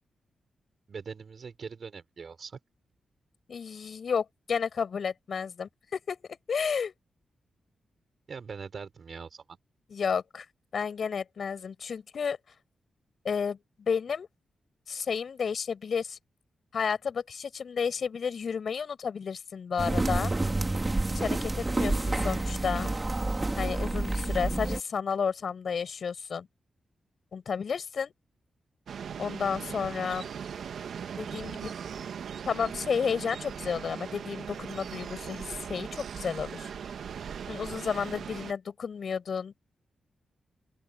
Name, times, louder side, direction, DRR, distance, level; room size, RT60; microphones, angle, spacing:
voice 1, 0.9-2.6 8.3-9.4, right 5 dB, 60° right, 5.1 m, -42 dB
voice 2, 3.5-6.2 6.5-6.9 9.9-10.4 10.7-12.4 13.2-14.3 14.9-16.2 16.7-20.3 21.1-22.9 23.6-26.5 27.3-28.1 29.2-30.3 31.2-31.7 32.5-36.7 37.5-39.5, left 6 dB, 65° left, 6.3 m, -32 dB
sound 1, 19.8-24.8, right 2 dB, 25° right, 2.4 m, -29 dB
sound 2, 28.9-38.5, right 7 dB, 75° right, 1.9 m, -39 dB
open air
supercardioid pair, 50°, 0 cm